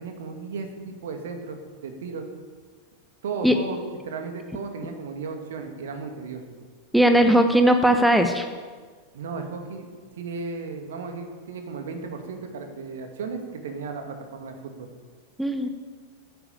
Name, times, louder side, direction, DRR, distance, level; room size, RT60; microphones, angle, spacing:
voice 1, 0.0-2.3 3.2-6.4 9.1-14.9, right 4 dB, 60° right, 5 dB, 2.4 m, -35 dB
voice 2, 6.9-8.5 15.4-15.7, right 1 dB, ahead, 7 dB, 1.0 m, -18 dB
14.0 x 10.0 x 8.6 m, 1.6 s
figure-of-eight pair, 90°, 0 cm